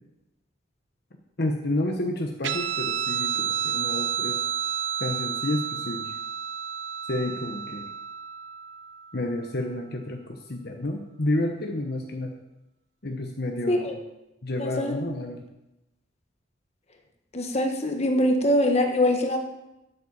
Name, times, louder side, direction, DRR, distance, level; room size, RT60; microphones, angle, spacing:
voice 1, 1.4-4.5 5.0-6.1 7.1-7.9 9.1-12.4 13.0-14.0 14.4-15.5, left 1 dB, 55° left, 3 dB, 1.1 m, -30 dB
Guitar, 2.4-9.4, right 8 dB, 70° right, 0.6 m, -31 dB
voice 2, 14.6-15.0 17.3-19.4, left 1 dB, 35° left, 3 dB, 1.4 m, -23 dB
9.4 x 8.5 x 7.1 m, 0.95 s
head